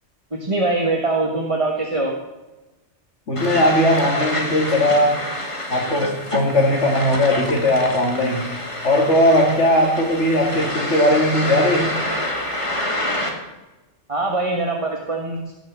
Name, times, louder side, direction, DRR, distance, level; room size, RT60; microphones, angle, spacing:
voice 1, 0.3-2.1 14.1-15.4, right 2 dB, 30° right, 0 dB, 1.6 m, -22 dB
voice 2, 3.3-5.2 5.7-8.5 8.8-11.9, left 1 dB, 75° left, -2 dB, 2.5 m, -18 dB
sound 1, 3.4-13.3, left 1 dB, 25° left, 2.2 m, -27 dB
18.0 x 7.2 x 7.3 m, 1.1 s
omnidirectional pair, 1.2 m